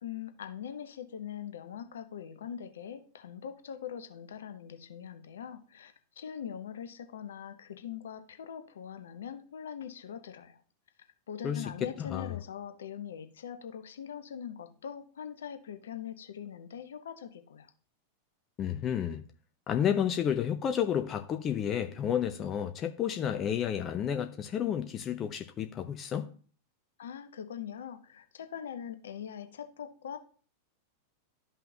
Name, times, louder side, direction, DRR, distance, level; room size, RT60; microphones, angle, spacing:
voice 1, 0.0-10.6 11.3-17.7 27.0-30.2, left 8 dB, 65° left, 0.9 m, -42 dB
voice 2, 11.4-12.3 18.6-19.2 19.7-26.3, left 9 dB, 30° left, 0.6 m, -31 dB
12.0 x 5.6 x 2.8 m
figure-of-eight pair, 90°, 0 cm